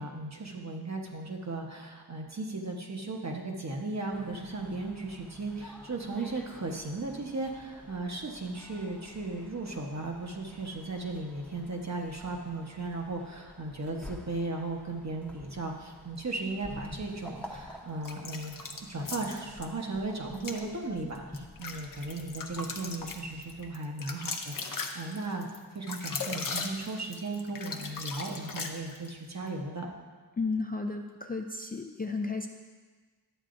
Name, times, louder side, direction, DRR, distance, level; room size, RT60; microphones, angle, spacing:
voice 1, 0.0-25.5 25.7-29.9, right 2 dB, 45° right, 1 dB, 1.0 m, -36 dB
sound 1, 4.1-23.6, left 1 dB, 5° left, 0.9 m, -50 dB
sound 2, 18.0-19.7 20.3-20.6 21.1-29.2, left 4 dB, 55° left, 0.7 m, -38 dB
voice 2, 30.4-32.5, left 3 dB, 25° left, 3 dB, 0.3 m, -33 dB
11.0 x 8.0 x 2.5 m, 1.5 s
wide cardioid pair, 95°, 39 cm